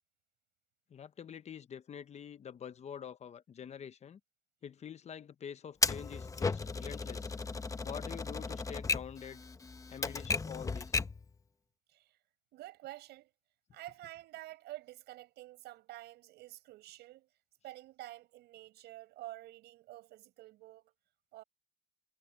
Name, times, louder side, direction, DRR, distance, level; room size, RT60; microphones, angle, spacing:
voice 1, 0.9-4.2 4.6-7.3 7.8-9.4 9.9-11.0, left 8 dB, 40° left, 1.0 m, -46 dB
Typewriter, 5.8-11.3, left 4 dB, 20° left, 0.9 m, -35 dB
voice 2, 12.5-13.3 13.7-17.3 17.6-20.9 21.3-21.4, right 16 dB, 80° right, 6.8 m, -49 dB
cardioid pair, 110°, 17 cm